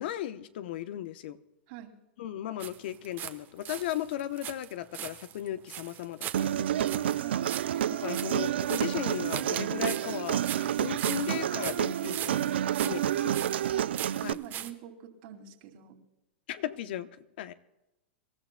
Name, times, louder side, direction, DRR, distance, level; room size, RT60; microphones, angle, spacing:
voice 1, 0.0-1.4 2.2-7.1 7.9-12.6 12.8-13.0 14.2-14.4 16.5-17.1 17.4-17.5, left 12 dB, 65° left, 12 dB, 0.9 m, -36 dB
sound 1, 2.6-3.4 3.6-14.7, right 11 dB, 35° right, 1.1 m, -40 dB
Human voice, 6.3-14.3, right 11 dB, 80° right, 0.4 m, -29 dB
voice 2, 13.1-13.5 14.3-16.0, right 10 dB, 55° right, 3 dB, 2.6 m, -45 dB
26.5 x 13.5 x 2.3 m, 0.98 s
hypercardioid pair, 120°, 6 cm